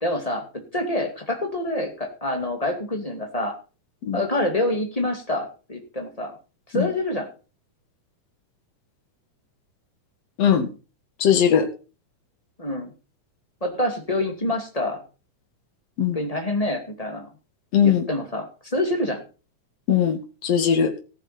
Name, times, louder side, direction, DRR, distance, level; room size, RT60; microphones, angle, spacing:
voice 1, 0.0-3.5 4.1-6.4 6.7-7.3 12.6-12.9 13.6-15.0 16.1-17.3 17.8-19.2, left 1 dB, 15° left, 2 dB, 2.0 m, -26 dB
voice 2, 10.4-10.7 11.2-11.7 16.0-16.2 17.7-18.0 19.9-20.9, left 8 dB, 55° left, 6 dB, 2.7 m, -19 dB
18.5 x 7.3 x 4.3 m, 0.34 s
omnidirectional pair, 3.6 m